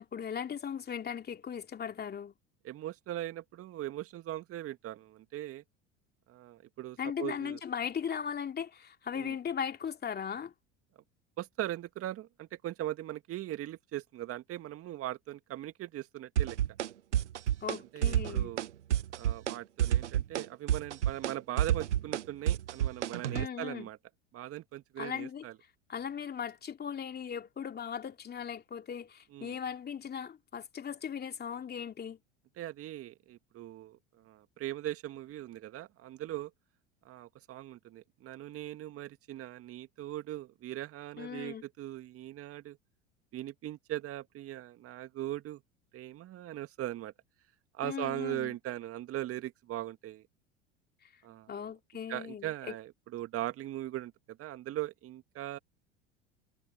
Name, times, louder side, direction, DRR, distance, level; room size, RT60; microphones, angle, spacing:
voice 1, 0.0-2.3 7.0-10.5 17.6-18.5 23.3-23.9 25.0-25.4 25.9-32.2 41.2-41.6 47.8-48.5 51.5-52.7, left 7 dB, 25° left, 2.8 m, -38 dB
voice 2, 2.6-5.6 6.3-7.6 9.1-9.4 11.4-16.6 17.9-18.7 19.2-24.0 24.3-25.6 29.3-29.6 32.6-36.5 37.0-42.8 43.3-45.6 45.9-47.1 47.7-50.2 51.2-51.7 52.1-55.6, right 14 dB, 40° right, 2.0 m, -40 dB
sound 1, 16.4-16.9 17.1-17.8 18.0-18.7 18.9-19.5 19.8-23.5, right 11 dB, 80° right, 0.7 m, -29 dB
figure-of-eight pair, 75°, 35 cm